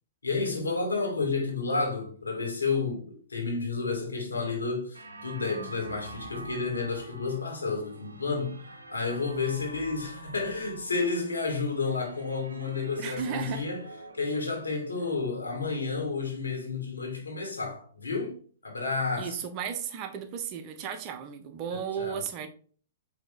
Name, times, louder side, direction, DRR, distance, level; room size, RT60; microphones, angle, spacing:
voice 1, 0.2-13.8 14.1-18.4 18.6-19.4 22.0-22.2, left 4 dB, 85° left, 1.6 m, -31 dB
sound 1, 4.9-15.1, right 3 dB, 85° right, 0.6 m, -46 dB
voice 2, 13.0-13.7 19.1-22.5, right 7 dB, 40° right, 0.8 m, -34 dB
4.8 x 2.9 x 3.7 m
figure-of-eight pair, 110°, 0 cm